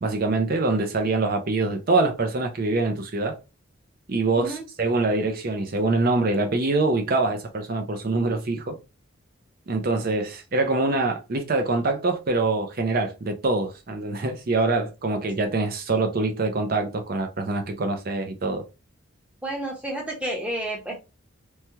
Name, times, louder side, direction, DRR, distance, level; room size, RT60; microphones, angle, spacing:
voice 1, 0.0-3.4 4.1-8.8 9.7-18.7, right 3 dB, 45° right, 0.5 m, -24 dB
voice 2, 19.4-20.9, right 1 dB, 5° right, 0.9 m, -30 dB
3.1 x 2.2 x 2.8 m
head